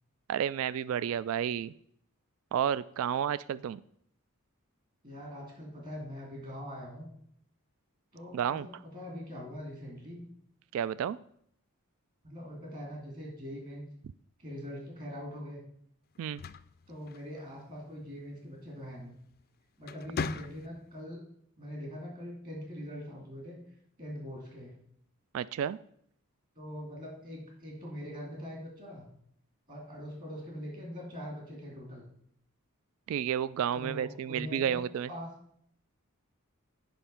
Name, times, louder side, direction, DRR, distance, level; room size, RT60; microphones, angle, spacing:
voice 1, 0.3-1.7 2.5-3.8 8.3-8.7 10.7-11.2 16.2-16.4 25.3-25.8 33.1-35.1, right 9 dB, 70° right, 17 dB, 0.3 m, -31 dB
voice 2, 5.0-7.1 8.1-10.2 12.2-13.8 14.4-15.6 16.9-19.1 19.8-21.2 21.6-23.6 24.0-24.7 26.5-29.0 29.7-32.0 33.7-34.8 35.1-35.3, equal, 40° right, -1 dB, 3.0 m, -42 dB
sound 1, 16.1-17.7 19.1-19.4 19.8-21.0, left 5 dB, 45° left, 0.4 m, -39 dB
9.2 x 5.5 x 5.6 m, 0.68 s
head